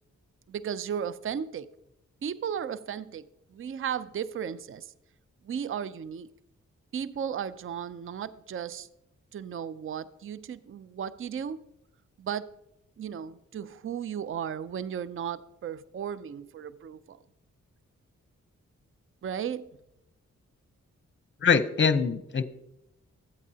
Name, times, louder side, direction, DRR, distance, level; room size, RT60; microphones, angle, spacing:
voice 1, 0.5-1.7 2.2-4.9 5.5-6.3 6.9-8.9 9.3-11.6 12.2-12.5 13.0-17.2 19.2-19.7, right 8 dB, 40° right, 0.5 m, -35 dB
voice 2, 21.4-22.4, left 6 dB, 35° left, 0.7 m, -23 dB
13.5 x 8.4 x 2.8 m
supercardioid pair, 40°, 32 cm